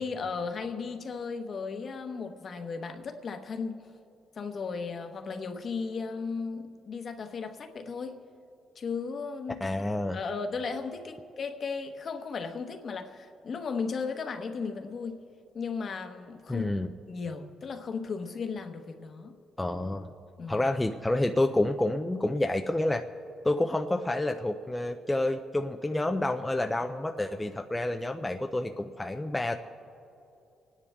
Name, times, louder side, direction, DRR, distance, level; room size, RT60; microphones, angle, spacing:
voice 1, 0.0-3.9 4.3-8.2 8.7-15.2 15.5-16.7 17.1-19.4 20.4-20.7, left 5 dB, 50° left, 1.1 m, -35 dB
voice 2, 9.6-10.2 16.5-16.9 19.6-20.1 20.5-23.0 23.4-29.6, left 1 dB, 10° left, 0.5 m, -29 dB
29.5 x 10.0 x 3.5 m
cardioid pair, 90°, 0 cm